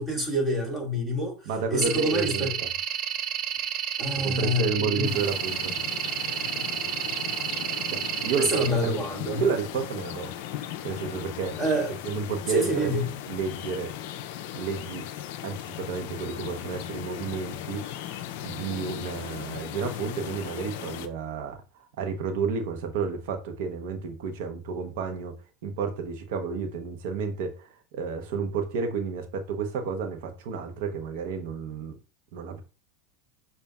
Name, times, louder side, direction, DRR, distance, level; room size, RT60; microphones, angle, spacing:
voice 1, 0.0-1.4 1.7-2.5 4.0-5.2 8.4-9.4 11.6-12.0 12.5-13.1, equal, 15° right, 2.1 m, -26 dB
voice 2, 1.5-2.7 4.2-5.7 7.9-9.0 9.3-10.3 10.8-11.6 12.0-12.9 13.3-13.9 14.5-15.0 15.4-17.8 18.4-21.6 22.0-25.3 25.6-32.0 32.3-32.6, right 5 dB, 70° right, 0.9 m, -31 dB
sound 1, 1.8-8.7, right 9 dB, 45° right, 0.5 m, -31 dB
sound 2, 5.0-21.1, left 11 dB, 65° left, 0.4 m, -37 dB
6.7 x 2.4 x 2.4 m
hypercardioid pair, 105°, 0 cm